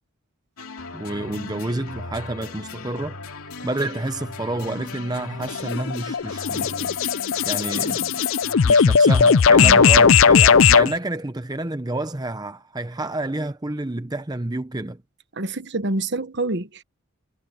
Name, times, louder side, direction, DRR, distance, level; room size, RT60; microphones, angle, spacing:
sound 1, 0.6-8.9, left 4 dB, 80° left, 2.4 m, -38 dB
voice 1, 0.9-3.2 3.6-7.0 7.4-8.2 8.6-15.0, right 2 dB, 20° right, 0.7 m, -29 dB
sound 2, 5.5-10.9, left 6 dB, 60° left, 0.5 m, -17 dB
voice 2, 9.6-10.2 15.3-16.8, right 2 dB, 55° right, 1.3 m, -27 dB
head